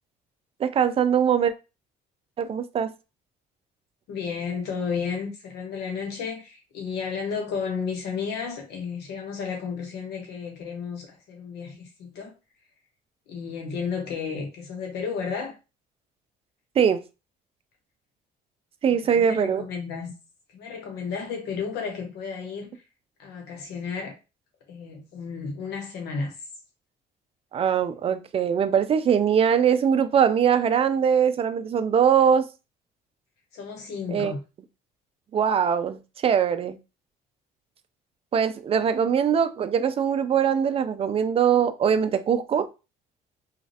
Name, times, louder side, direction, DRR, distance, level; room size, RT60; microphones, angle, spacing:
voice 1, 0.6-1.5 2.4-2.9 16.8-17.0 18.8-19.6 27.5-32.4 34.1-34.3 35.3-36.8 38.3-42.7, right 8 dB, 35° right, 0.4 m, -22 dB
voice 2, 4.1-12.3 13.3-15.5 18.9-20.1 20.5-22.7 23.2-24.1 24.7-26.4 33.5-34.4, left 5 dB, 80° left, 1.1 m, -32 dB
3.1 x 2.4 x 2.7 m
cardioid pair, 110°, 17 cm